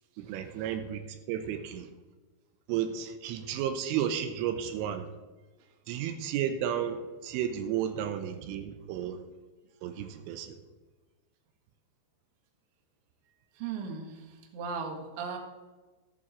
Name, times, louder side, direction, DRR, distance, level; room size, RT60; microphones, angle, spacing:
voice 1, 0.2-1.9 2.7-5.1 5.9-9.2 9.8-10.6, right 9 dB, 85° right, 8 dB, 3.2 m, -33 dB
voice 2, 13.6-15.4, right 5 dB, 60° right, 2 dB, 2.5 m, -37 dB
14.5 x 11.0 x 3.1 m, 1.3 s
omnidirectional pair, 5.8 m